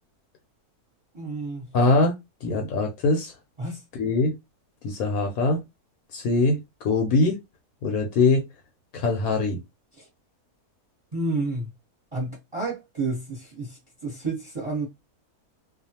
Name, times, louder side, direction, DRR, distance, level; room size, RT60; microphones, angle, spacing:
voice 1, 1.1-1.6 3.6-3.8 10.0-10.1 11.1-11.7 12.1-14.9, right 3 dB, 25° right, 1.0 m, -30 dB
voice 2, 1.7-2.1 2.4-3.3 3.9-4.3 4.8-5.6 6.1-6.6 6.8-7.4 7.8-8.4 8.9-9.6, left 3 dB, 75° left, 1.1 m, -22 dB
2.5 x 2.2 x 2.7 m
omnidirectional pair, 1.6 m